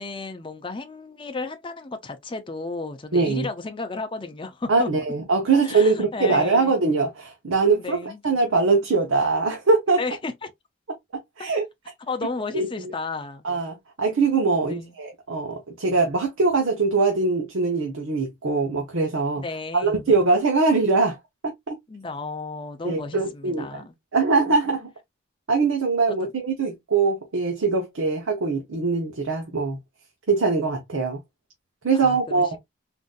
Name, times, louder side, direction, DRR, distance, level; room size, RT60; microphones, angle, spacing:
voice 1, 0.0-4.9 5.5-6.8 7.7-8.2 10.0-10.5 11.4-11.5 12.1-13.4 14.6-14.9 19.4-20.1 21.9-23.9 24.5-24.6 26.1-26.3 31.9-32.6, left 3 dB, 25° left, 0.5 m, -33 dB
voice 2, 3.1-3.5 4.7-10.0 11.1-11.6 12.5-12.9 13.4-19.4 19.8-21.2 21.4-21.7 22.8-23.8 24.1-24.9 25.5-29.8 30.3-31.2 31.8-32.6, right 4 dB, 80° right, 0.8 m, -22 dB
3.8 x 2.6 x 2.3 m
head